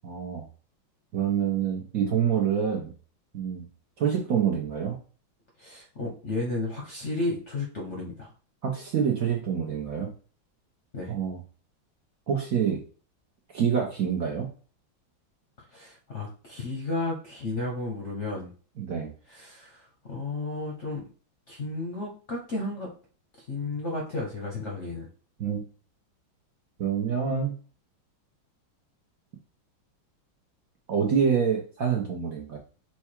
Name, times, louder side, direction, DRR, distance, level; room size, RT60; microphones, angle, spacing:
voice 1, 0.0-0.5 1.1-2.9 3.3-3.6 4.0-5.0 8.6-10.1 11.1-11.4 12.3-12.8 13.5-14.5 18.8-19.1 25.4-25.6 26.8-27.5 30.9-32.6, right 7 dB, 60° right, 0 dB, 0.9 m, -26 dB
voice 2, 5.6-8.3 10.9-11.1 15.7-18.5 19.3-21.0 21.5-22.9 23.5-25.1, left 2 dB, 50° left, -1 dB, 0.9 m, -33 dB
4.5 x 2.3 x 4.4 m, 0.39 s
omnidirectional pair, 2.2 m